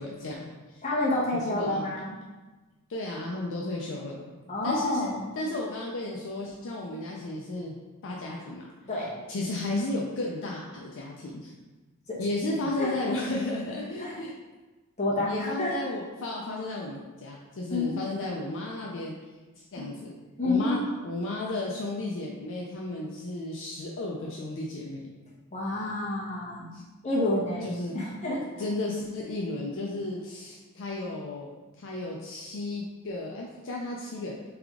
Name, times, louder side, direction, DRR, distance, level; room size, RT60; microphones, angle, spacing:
voice 1, 0.0-0.8 1.4-1.9 2.9-4.2 4.6-5.1 5.4-7.8 8.0-8.7 9.3-11.5 12.2-14.3 15.3-19.2 19.7-20.1 20.4-25.1 26.7-26.8 27.6-28.0 28.6-31.5 31.8-34.4, left 2 dB, 60° left, -2 dB, 0.5 m, -33 dB
voice 2, 0.8-2.1 4.5-5.4 8.9-9.1 12.1-12.2 12.8-12.9 14.0-14.2 15.0-15.8 17.7-18.0 20.4-20.9 25.5-26.8 27.0-27.7 27.9-28.4, left 2 dB, 30° left, -7 dB, 1.1 m, -29 dB
3.5 x 3.4 x 3.6 m, 1.2 s
head